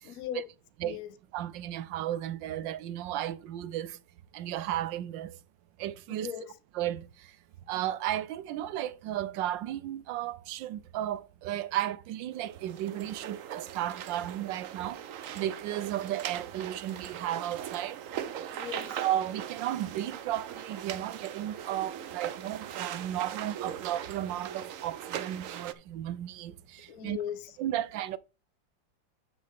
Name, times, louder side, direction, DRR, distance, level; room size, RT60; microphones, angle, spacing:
voice 1, 0.0-0.5 0.8-1.1 6.1-6.6 18.5-19.0 26.9-27.6, left 10 dB, 55° left, 1.2 m, -39 dB
voice 2, 1.3-4.0 4.3-5.4 5.8-6.3 6.8-7.1 7.7-15.0 15.4-18.0 18.9-27.2 27.6-28.2, right 12 dB, 85° right, 1.3 m, -34 dB
sound 1, 12.3-25.7, right 9 dB, 60° right, 0.9 m, -40 dB
9.7 x 6.1 x 3.5 m
omnidirectional pair, 2.0 m